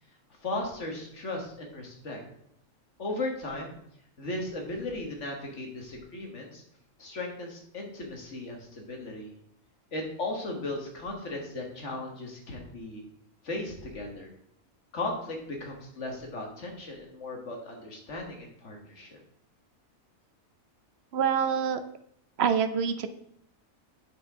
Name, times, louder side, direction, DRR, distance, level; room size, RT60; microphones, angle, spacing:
voice 1, 0.4-2.2 3.0-3.8 4.2-6.6 7.0-9.3 9.9-13.0 13.4-14.3 14.9-19.2, left 2 dB, 55° left, 1 dB, 1.9 m, -36 dB
voice 2, 21.1-21.8 22.4-23.1, right 7 dB, 60° right, 10 dB, 0.8 m, -26 dB
8.5 x 6.6 x 3.6 m, 0.72 s
omnidirectional pair, 1.5 m